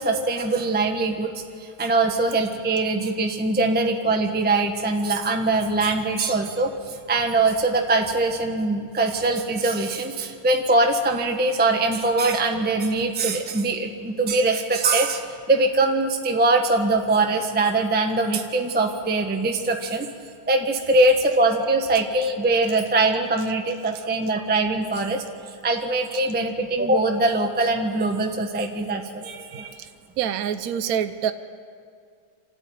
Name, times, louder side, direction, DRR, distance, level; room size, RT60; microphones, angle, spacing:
voice 1, 0.0-1.3 1.8-15.2 15.5-20.1 20.5-25.2 25.6-29.7, right 2 dB, 5° right, 3 dB, 1.0 m, -22 dB
voice 2, 30.2-31.3, right 9 dB, 70° right, 10 dB, 0.8 m, -25 dB
27.0 x 13.5 x 9.4 m, 2.3 s
omnidirectional pair, 2.4 m